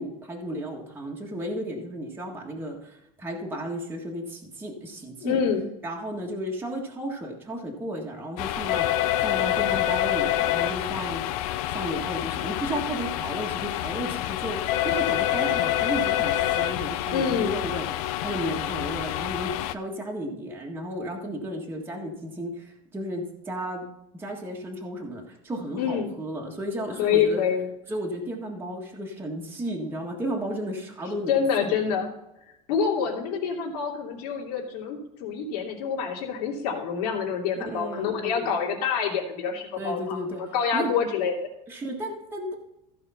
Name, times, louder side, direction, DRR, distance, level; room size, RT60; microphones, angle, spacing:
voice 1, 0.0-5.4 5.8-11.2 11.7-23.8 24.1-27.4 27.9-31.7 37.5-38.5 39.8-40.4 40.7-40.9 41.7-42.5, equal, 10° right, -1 dB, 1.7 m, -33 dB
voice 2, 5.2-5.7 17.1-17.6 25.8-26.1 27.0-27.7 31.3-32.1 32.7-41.5, left 7 dB, 90° left, -1 dB, 3.0 m, -27 dB
sound 1, 8.4-19.7, left 13 dB, 75° left, 0.6 m, -27 dB
15.0 x 5.1 x 5.6 m, 0.88 s
cardioid pair, 160°, 19 cm